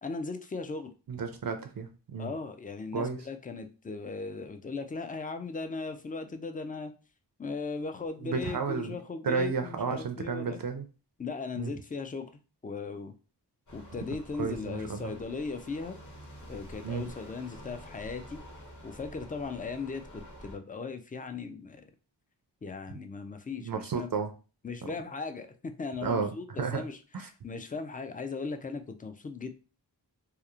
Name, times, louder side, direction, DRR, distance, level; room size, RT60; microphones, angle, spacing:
voice 1, 0.0-0.9 2.2-6.9 7.4-10.6 11.2-13.1 13.7-16.0 16.5-18.4 18.8-21.9 22.6-24.1 24.6-27.0 27.4-29.5, left 4 dB, 20° left, 8 dB, 0.3 m, -38 dB
voice 2, 1.1-2.3 2.9-3.2 8.2-8.9 9.2-10.8 11.6-11.7 14.4-15.1 16.8-17.0 23.6-24.3 26.0-26.8 27.1-27.3, right 5 dB, 55° right, 6 dB, 0.5 m, -32 dB
sound 1, 13.7-20.6, equal, 45° left, 0.9 m, -48 dB
2.8 x 2.0 x 2.4 m, 0.34 s
wide cardioid pair, 40°, 42 cm